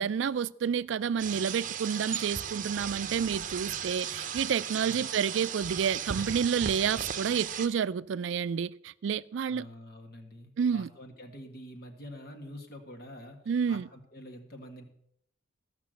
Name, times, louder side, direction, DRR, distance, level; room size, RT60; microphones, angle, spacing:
voice 1, 0.0-9.7 10.6-10.9 13.5-13.9, right 7 dB, 70° right, 0.3 m, -29 dB
sound 1, 1.2-7.7, right 8 dB, 40° right, 0.7 m, -36 dB
voice 2, 9.5-13.4 13.7-14.8, equal, 50° left, 1.8 m, -46 dB
14.5 x 6.0 x 7.7 m
head